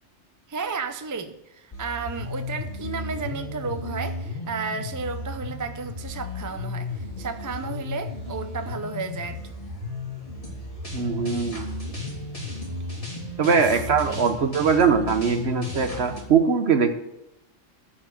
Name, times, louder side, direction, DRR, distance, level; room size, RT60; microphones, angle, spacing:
voice 1, 0.5-9.5 13.4-13.6 14.0-14.2, right 4 dB, 20° right, 8 dB, 0.5 m, -33 dB
sound 1, 1.7-16.2, left 2 dB, 25° left, 2.7 m, -34 dB
voice 2, 10.9-11.7 13.4-16.9, right 6 dB, 55° right, 7 dB, 1.2 m, -21 dB
13.5 x 4.8 x 7.7 m, 0.86 s
omnidirectional pair, 1.3 m